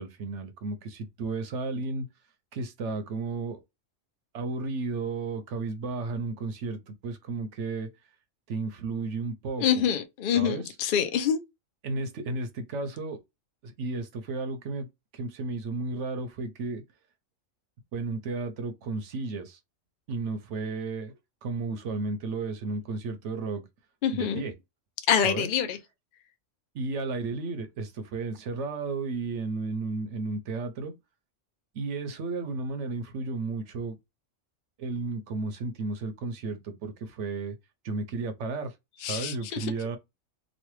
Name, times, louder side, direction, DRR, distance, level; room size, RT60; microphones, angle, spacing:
voice 1, 0.0-2.1 2.5-3.6 4.3-7.9 8.5-9.8 10.3-10.7 11.8-13.2 13.6-14.9 15.1-16.8 17.9-19.6 20.1-21.1 21.4-23.7 24.1-24.5 25.2-25.5 26.7-30.9 31.7-34.0 34.8-37.6 37.8-40.0, right 3 dB, 70° right, 0.9 m, -33 dB
voice 2, 9.6-11.4 24.0-24.4 25.1-25.8 39.0-39.7, left 8 dB, 65° left, 0.5 m, -26 dB
3.1 x 2.2 x 3.0 m
omnidirectional pair, 1.4 m